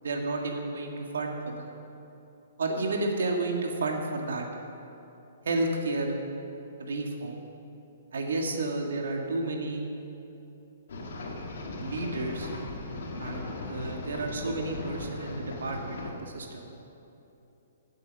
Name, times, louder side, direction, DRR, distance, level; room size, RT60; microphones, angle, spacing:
voice 1, 0.0-1.7 2.6-4.5 5.5-6.2 6.8-7.4 8.1-9.8 11.8-12.5 13.2-16.7, right 2 dB, 85° right, 2 dB, 1.9 m, -31 dB
sound 1, 10.9-16.1, left 2 dB, 65° left, 2.3 m, -38 dB
16.0 x 7.8 x 5.4 m, 2.9 s
hypercardioid pair, 170°, 0 cm